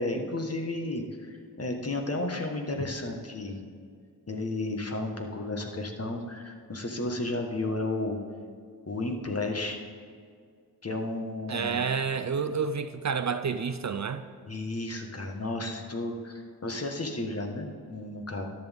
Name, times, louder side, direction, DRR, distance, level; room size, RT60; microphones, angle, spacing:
voice 1, 0.0-3.6 4.3-8.2 8.9-9.8 10.8-11.8 14.5-18.4, left 2 dB, 40° left, 3 dB, 1.6 m, -33 dB
voice 2, 11.5-14.2, right 6 dB, 45° right, 11 dB, 0.6 m, -29 dB
13.5 x 10.5 x 3.6 m, 2.1 s
cardioid pair, 60°, 38 cm